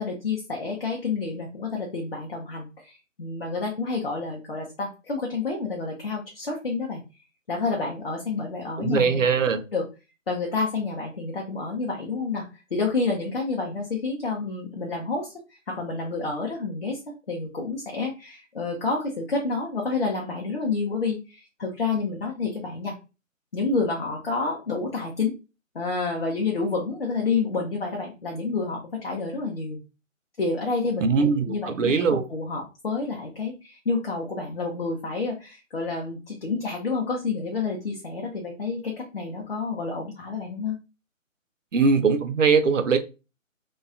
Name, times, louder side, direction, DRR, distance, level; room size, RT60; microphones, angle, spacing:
voice 1, 0.0-7.0 7.5-9.2 9.7-9.9 10.3-12.4 12.7-17.0 17.3-22.9 23.5-25.3 25.7-29.8 30.4-32.0 32.3-40.8, left 4 dB, 45° left, 0.6 m, -29 dB
voice 2, 8.8-9.6 31.0-32.3 41.7-43.0, right 5 dB, 65° right, 0.5 m, -21 dB
2.6 x 2.2 x 2.4 m
figure-of-eight pair, 150°, 40 cm